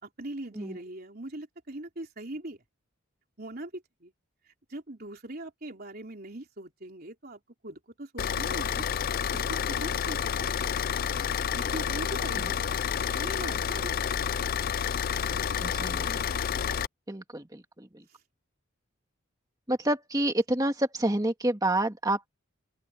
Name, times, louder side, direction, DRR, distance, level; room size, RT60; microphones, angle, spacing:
voice 1, 0.0-2.6 3.4-4.1 4.5-8.9 9.3-10.8 11.5-12.7 13.1-14.1 18.1-18.2, right 1 dB, 45° right, 3.8 m, -41 dB
Car / Idling, 8.2-16.9, left 8 dB, 45° left, 0.4 m, -29 dB
voice 2, 15.6-16.2 17.1-18.0 19.7-22.3, right 1 dB, 15° right, 2.0 m, -29 dB
open air
head